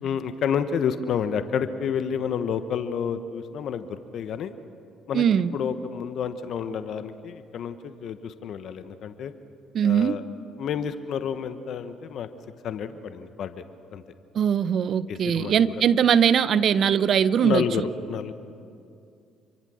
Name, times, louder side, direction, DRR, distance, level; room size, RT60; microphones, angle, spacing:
voice 1, 0.0-4.5 5.1-5.2 5.5-9.3 9.8-10.2 10.6-12.3 12.6-13.6 13.9-14.0 15.1-15.7 17.4-18.3, left 7 dB, 60° left, 10 dB, 1.2 m, -29 dB
voice 2, 5.1-5.6 9.7-10.2 14.3-17.9, right 8 dB, 55° right, 16 dB, 0.8 m, -21 dB
27.0 x 24.5 x 6.4 m, 2.4 s
hypercardioid pair, 60°, 0 cm